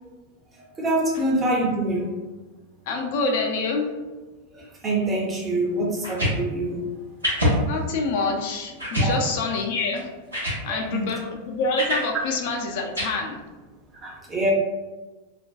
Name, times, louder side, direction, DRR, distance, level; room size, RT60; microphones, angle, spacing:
voice 1, 0.8-2.1 4.8-6.8 9.0-9.2 10.7-11.0 14.0-14.5, right 1 dB, 20° right, -2 dB, 0.6 m, -25 dB
voice 2, 2.9-3.9 7.6-10.1 10.6-13.4, left 3 dB, 50° left, 1 dB, 0.3 m, -26 dB
sound 1, 6.0-6.4 7.2-7.6 8.1-8.2 8.8-9.1 10.0-10.1 10.3-10.6 11.8-12.1 12.9-13.1, equal, 80° right, 0.8 m, -24 dB
2.5 x 2.1 x 2.3 m, 1.2 s
figure-of-eight pair, 90°, 0 cm